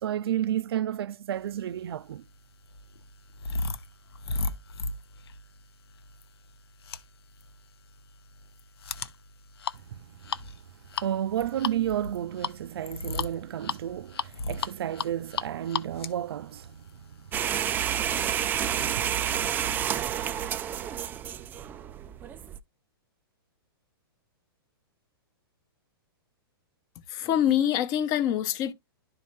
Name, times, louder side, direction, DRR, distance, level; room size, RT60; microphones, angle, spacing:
voice 1, 0.0-2.2 9.8-10.3 11.0-19.0, right 11 dB, 75° right, 0.5 m, -32 dB
sound 1, 1.8-17.4, left 4 dB, 85° left, 0.8 m, -36 dB
sound 2, 17.3-22.6, right 9 dB, 15° right, 0.4 m, -29 dB
voice 2, 27.1-28.7, left 10 dB, 30° left, 0.8 m, -25 dB
11.5 x 4.2 x 3.1 m
hypercardioid pair, 150°, 13 cm